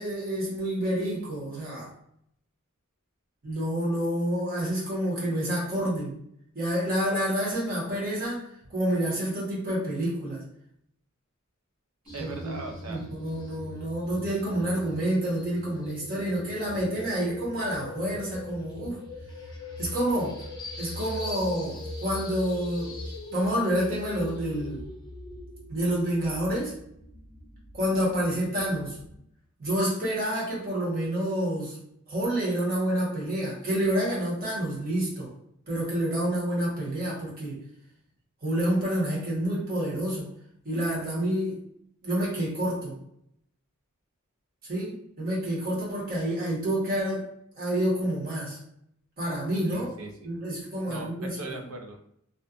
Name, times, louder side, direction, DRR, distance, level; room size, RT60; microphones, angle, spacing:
voice 1, 0.0-1.9 3.4-6.1 6.5-10.4 12.2-12.5 12.8-19.0 19.8-20.4 20.8-22.9 23.3-24.8 25.7-26.7 27.7-29.0 29.6-31.8 32.1-35.3 35.7-37.6 38.4-40.3 40.6-41.6 42.0-43.0 44.6-47.3 47.6-48.6 49.2-49.9 50.2-51.5, right 1 dB, 45° right, -5 dB, 1.0 m, -28 dB
sound 1, 12.1-29.2, left 1 dB, 20° left, 0.5 m, -41 dB
voice 2, 12.1-13.0 49.7-50.4 50.8-52.0, right 3 dB, 80° right, 3 dB, 0.5 m, -39 dB
2.5 x 2.2 x 2.4 m, 0.72 s
head